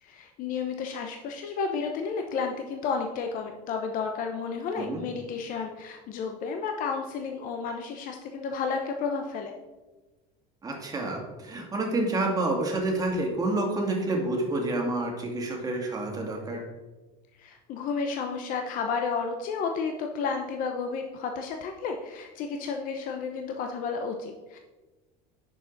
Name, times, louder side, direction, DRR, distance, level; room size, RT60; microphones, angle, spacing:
voice 1, 0.0-9.5 17.4-24.6, left 5 dB, 50° left, 4 dB, 0.9 m, -32 dB
voice 2, 10.6-16.6, right 2 dB, 20° right, 0 dB, 2.2 m, -28 dB
9.3 x 6.7 x 4.0 m, 1.2 s
cardioid pair, 130°, 17 cm